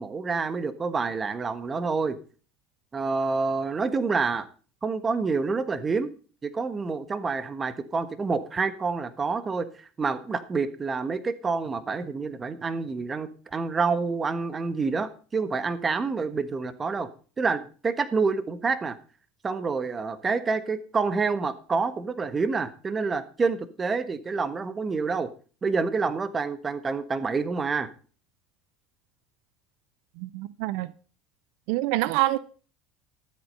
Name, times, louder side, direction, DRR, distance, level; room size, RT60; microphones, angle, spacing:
voice 1, 0.0-2.2 2.9-4.5 4.8-6.1 6.4-17.1 17.4-19.0 19.4-25.3 25.6-27.9, right 4 dB, 25° right, 1.4 m, -28 dB
voice 2, 30.2-30.9 31.7-32.4, right 18 dB, 75° right, 0.5 m, -26 dB
12.5 x 8.3 x 5.5 m
supercardioid pair, 100°, 0 cm